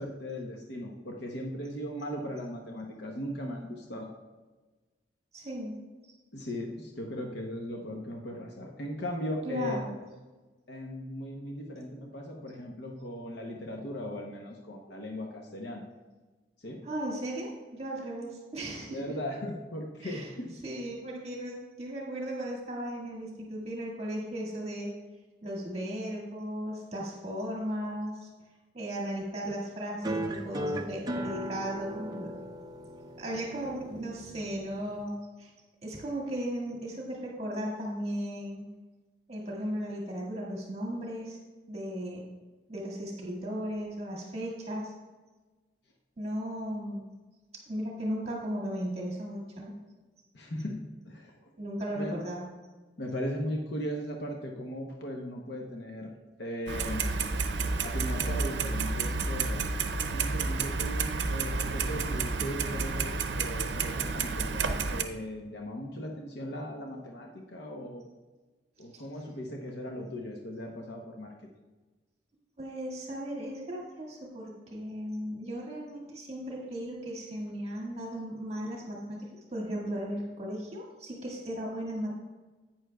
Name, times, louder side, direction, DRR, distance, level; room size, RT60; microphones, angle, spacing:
voice 1, 0.0-4.1 6.3-9.8 10.7-15.9 16.6-16.9 18.9-20.6 50.3-51.5 51.9-52.2 53.0-56.1 56.4-57.2 57.8-59.7 60.1-68.1 68.8-71.3, left 1 dB, 65° left, 1 dB, 0.9 m, -38 dB
voice 2, 5.3-5.8 9.5-9.9 16.8-19.0 20.0-20.3 20.6-24.9 25.4-28.3 28.7-32.3 33.2-35.5 35.8-38.6 39.3-41.4 41.7-42.3 42.7-44.9 46.2-47.1 47.7-49.7 51.6-52.5 68.9-69.0 72.6-82.1, equal, 35° right, -3 dB, 1.8 m, -36 dB
sound 1, 30.0-35.0, right 1 dB, 20° right, 0.6 m, -37 dB
Clock, 56.7-65.0, right 4 dB, 80° right, 0.6 m, -30 dB
11.0 x 8.9 x 2.3 m, 1.2 s
head